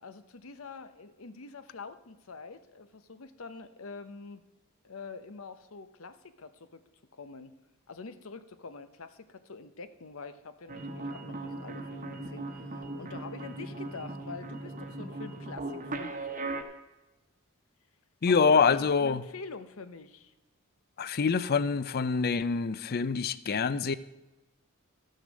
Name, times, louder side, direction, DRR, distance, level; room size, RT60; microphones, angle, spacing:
voice 1, 0.0-4.4 4.8-6.8 7.1-7.5 7.9-16.2 18.3-20.3, left 4 dB, 70° left, 11 dB, 0.8 m, -45 dB
sound 1, 10.7-16.6, right 2 dB, 35° right, 1.1 m, -38 dB
voice 2, 18.2-19.2 21.0-24.0, left 5 dB, 45° left, 15 dB, 0.5 m, -25 dB
13.5 x 6.5 x 6.4 m, 1.0 s
head